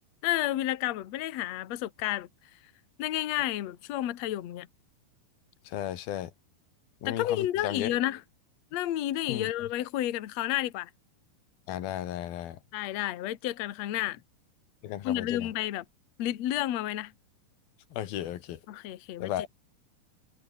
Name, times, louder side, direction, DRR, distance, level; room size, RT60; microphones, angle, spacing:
voice 1, 0.2-2.3 3.0-4.7 7.0-8.2 8.7-10.9 12.7-14.2 15.0-15.8 16.2-17.1 18.7-19.3, left 13 dB, 60° left, 2.2 m, -31 dB
voice 2, 5.6-6.3 7.0-8.0 9.3-9.5 11.7-12.6 14.8-15.5 17.9-18.6 19.2-19.5, left 12 dB, 90° left, 3.5 m, -34 dB
omnidirectional pair, 4.1 m